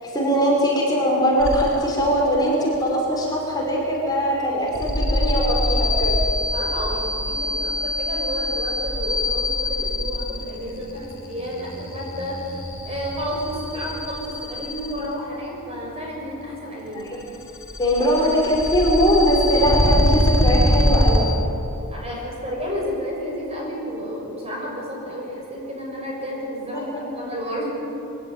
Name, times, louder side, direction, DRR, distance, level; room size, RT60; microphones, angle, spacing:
voice 1, 0.0-6.3 17.0-17.2 17.8-21.3 26.7-26.8, equal, 20° left, -4 dB, 5.6 m, -21 dB
sound 1, 1.4-2.0 2.3-2.8 4.7-15.1 17.1-21.2, left 1 dB, 65° left, 4.8 m, -24 dB
voice 2, 6.5-17.1 21.9-27.7, equal, 30° right, -2 dB, 6.5 m, -31 dB
24.5 x 16.5 x 9.5 m, 2.8 s
head